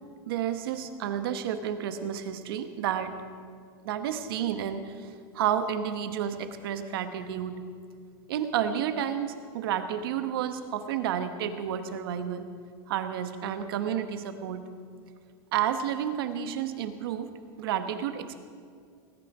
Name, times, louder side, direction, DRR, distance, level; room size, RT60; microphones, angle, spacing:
voice 1, 0.3-3.1 3.8-4.9 5.3-7.5 8.3-12.5 12.9-14.6 15.5-17.3 17.6-18.4, right 9 dB, 75° right, 9 dB, 1.1 m, -30 dB
19.5 x 9.8 x 4.8 m, 2.2 s
supercardioid pair, 165°, 12 cm